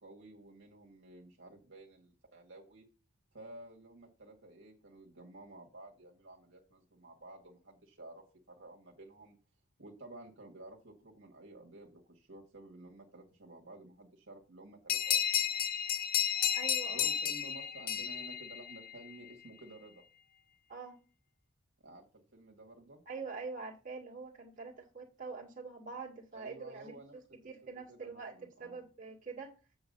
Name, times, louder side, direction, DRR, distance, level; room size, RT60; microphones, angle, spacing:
voice 1, 0.0-2.8 3.3-8.2 8.6-9.4 9.8-15.3 16.9-20.0 21.8-23.0 26.3-27.1 27.9-28.9, right 2 dB, 60° right, 1.7 m, -53 dB
sound 1, 14.9-19.1, left 9 dB, 45° left, 0.5 m, -32 dB
voice 2, 16.5-17.1 20.7-21.0 23.1-28.3 28.6-29.5, right 4 dB, 40° right, 1.9 m, -45 dB
8.0 x 4.8 x 5.4 m
head